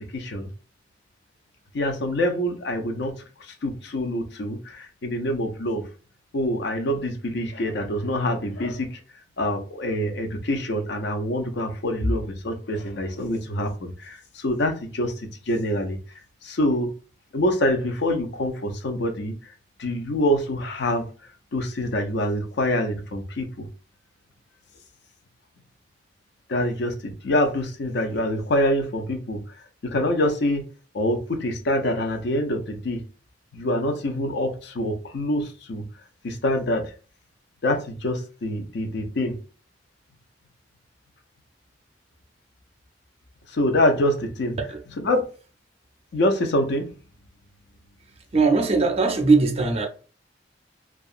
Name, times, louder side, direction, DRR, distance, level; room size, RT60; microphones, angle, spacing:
voice 1, 0.1-0.5 1.7-3.1 3.5-5.8 6.3-9.0 9.4-15.1 15.5-16.0 16.4-16.9 17.3-19.3 19.8-21.1 21.5-23.7 26.5-29.4 29.8-30.6 30.9-33.1 33.5-35.8 36.2-36.9 37.6-39.4 43.5-44.6 45.0-45.3 46.1-46.9, left 1 dB, 65° left, 0.5 m, -25 dB
voice 2, 48.3-49.9, right 3 dB, 35° right, 0.5 m, -20 dB
2.7 x 2.3 x 2.4 m
head